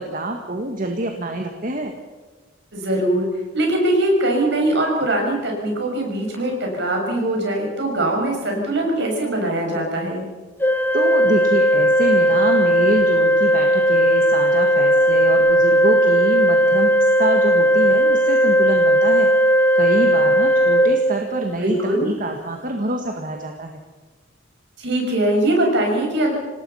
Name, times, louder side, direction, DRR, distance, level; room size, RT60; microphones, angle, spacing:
voice 1, 0.0-1.9 10.9-19.3 19.8-23.8, right 1 dB, 45° right, 3 dB, 1.8 m, -26 dB
voice 2, 2.7-3.3 3.5-10.2 21.6-22.1 24.8-26.4, right 1 dB, 60° right, 1 dB, 6.5 m, -21 dB
Organ, 10.6-21.6, equal, 10° left, 0.5 m, -16 dB
26.5 x 19.0 x 5.7 m, 1.3 s
head